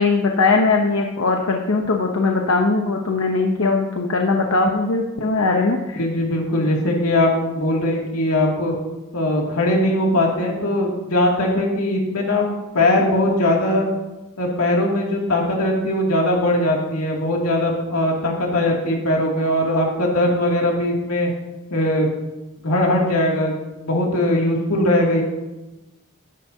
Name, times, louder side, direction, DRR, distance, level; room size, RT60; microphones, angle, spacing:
voice 1, 0.0-6.0, left 3 dB, 70° left, 2 dB, 0.9 m, -20 dB
voice 2, 5.9-8.7 9.1-12.5 12.7-13.9 14.4-21.3 21.7-22.1 22.6-25.2, left 1 dB, 90° left, -1 dB, 2.5 m, -20 dB
14.0 x 10.5 x 2.8 m, 1.1 s
head